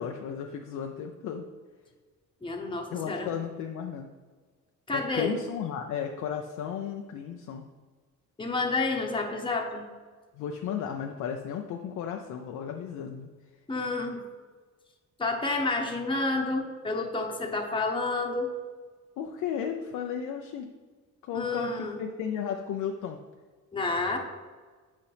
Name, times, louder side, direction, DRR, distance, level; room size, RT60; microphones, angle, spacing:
voice 1, 0.0-1.5 2.9-4.1 4.9-7.7 10.3-13.3 19.2-20.7 21.2-23.2, left 8 dB, 75° left, 3 dB, 0.6 m, -34 dB
voice 2, 2.4-3.3 4.9-5.4 8.4-9.8 13.7-14.2 15.2-18.5 21.3-22.0 23.7-24.2, left 3 dB, 15° left, 1 dB, 1.0 m, -29 dB
8.4 x 5.1 x 3.4 m, 1.4 s
cardioid pair, 90°, 30 cm